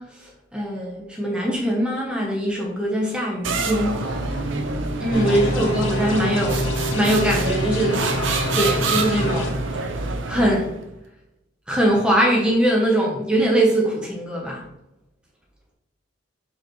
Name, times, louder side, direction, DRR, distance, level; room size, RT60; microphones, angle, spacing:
voice 1, 0.0-4.0 5.0-8.0 8.5-9.5 10.3-10.8 11.7-14.6, right 1 dB, 5° right, -3 dB, 1.0 m, -22 dB
sound 1, 3.4-10.8, right 3 dB, 70° right, 0.7 m, -27 dB
voice 2, 4.0-5.8, right 1 dB, 55° right, -3 dB, 2.3 m, -32 dB
sound 2, 5.1-9.5, left 1 dB, 80° left, 2.5 m, -26 dB
6.7 x 5.2 x 3.2 m, 0.85 s
head